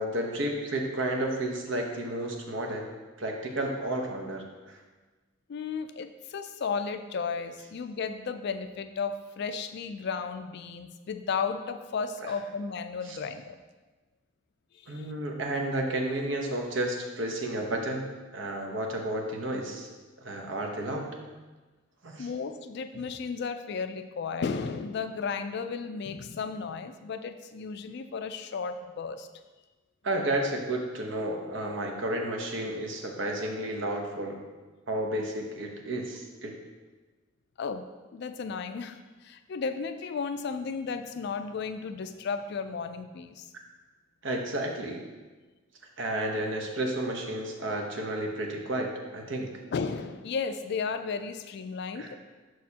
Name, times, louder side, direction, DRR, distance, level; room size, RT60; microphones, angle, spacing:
voice 1, 0.0-2.9 3.2-4.8 12.2-12.3 13.1-13.2 14.9-18.1 18.3-19.9 20.2-21.2 22.0-22.3 30.0-34.4 34.9-36.6 44.2-45.0 46.0-49.5 51.9-52.2, right 1 dB, 65° right, 1 dB, 0.9 m, -32 dB
voice 2, 5.5-13.6 14.9-15.0 22.2-29.3 37.6-37.8 38.1-39.0 39.2-43.5 49.7-52.2, left 5 dB, 55° left, 9 dB, 0.3 m, -34 dB
6.3 x 6.2 x 2.8 m, 1.3 s
head